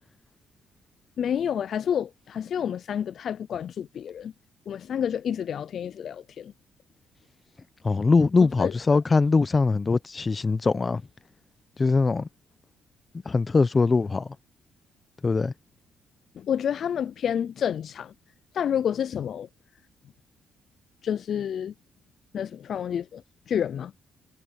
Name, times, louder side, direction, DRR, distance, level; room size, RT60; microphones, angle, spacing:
voice 1, 1.2-4.3 4.7-6.5 8.6-8.7 16.4-18.1 18.5-19.5 21.0-21.7 22.3-23.2 23.5-23.9, left 8 dB, 60° left, 0.4 m, -29 dB
voice 2, 7.8-11.0 11.8-12.3 13.3-14.3 15.2-15.5, left 4 dB, 30° left, 0.7 m, -22 dB
cardioid pair, 90°, 0 cm